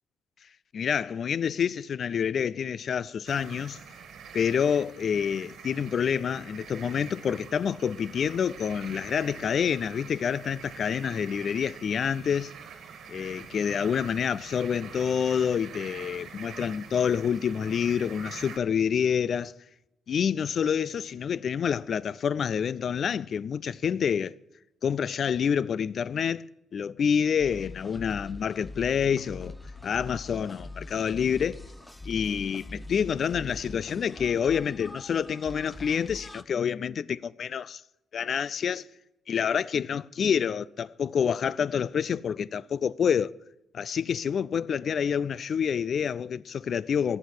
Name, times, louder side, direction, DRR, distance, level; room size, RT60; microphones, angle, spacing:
voice 1, 0.7-3.8 4.3-12.5 13.1-19.5 20.1-24.3 24.8-26.4 26.7-29.5 29.8-31.6 32.1-37.8 38.1-38.9 39.3-43.3 43.7-47.2, left 7 dB, 55° left, 0.4 m, -27 dB
sound 1, 3.3-18.6, right 7 dB, 70° right, 1.7 m, -45 dB
sound 2, 27.4-36.4, left 2 dB, 10° left, 0.8 m, -43 dB
14.5 x 6.5 x 9.6 m
cardioid pair, 90°, 0 cm